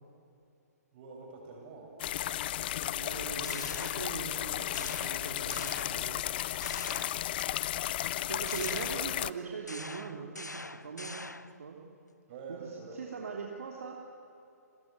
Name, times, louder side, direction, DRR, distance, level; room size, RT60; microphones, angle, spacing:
voice 1, 0.9-2.0 12.3-13.0, right 4 dB, 35° right, 1 dB, 7.8 m, -46 dB
sound 1, 2.0-9.3, left 13 dB, 35° left, 0.5 m, -34 dB
voice 2, 2.9-6.2 8.2-11.2 11.6-11.8 12.5-13.9, right 5 dB, 55° right, 0 dB, 3.1 m, -41 dB
sound 2, 3.4-4.4 4.7-6.3 6.6-7.7 8.5-11.6, left 2 dB, 85° left, 0.8 m, -44 dB
29.0 x 21.5 x 9.5 m, 2.7 s
figure-of-eight pair, 125°, 9 cm